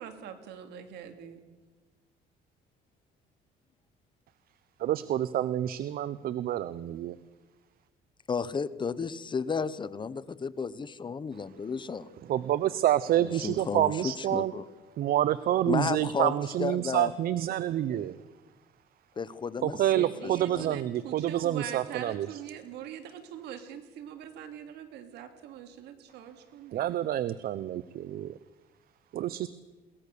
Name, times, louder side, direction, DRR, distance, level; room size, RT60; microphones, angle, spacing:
voice 1, 0.0-1.4 19.9-26.9, right 9 dB, 80° right, 8 dB, 2.6 m, -43 dB
voice 2, 4.8-7.2 12.3-14.5 15.0-18.2 19.6-22.4 26.7-28.4 29.1-29.5, right 12 dB, 60° right, 16 dB, 0.7 m, -28 dB
voice 3, 8.3-12.1 13.2-14.6 15.7-17.1 19.2-20.8, left 5 dB, 30° left, 17 dB, 0.8 m, -33 dB
22.0 x 18.5 x 6.8 m, 1.2 s
cardioid pair, 110°, 17 cm